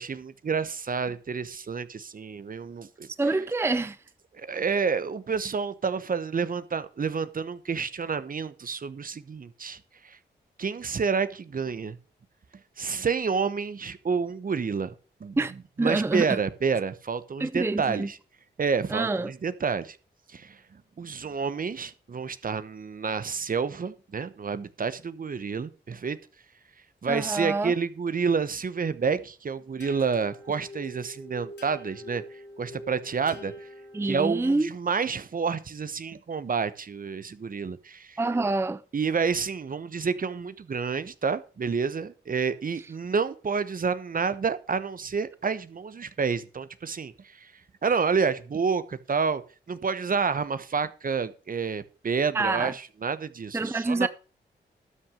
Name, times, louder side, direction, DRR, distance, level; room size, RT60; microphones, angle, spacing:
voice 1, 0.0-3.4 4.3-10.2 10.6-12.0 12.8-14.9 15.2-15.4 15.8-18.2 18.6-20.0 20.3-26.2 27.0-33.7 34.0-38.2 38.9-47.5 47.8-49.4 49.7-54.1, right 5 dB, 50° right, 1.0 m, -29 dB
voice 2, 3.2-4.0 15.4-15.5 15.8-16.4 17.4-18.1 18.9-19.3 27.1-27.7 33.9-34.7 38.2-38.8 52.3-52.7 53.5-54.1, right 2 dB, 15° right, 0.5 m, -26 dB
sound 1, 29.8-34.6, left 1 dB, 75° left, 3.9 m, -45 dB
12.5 x 6.0 x 6.4 m
cardioid pair, 55°, 18 cm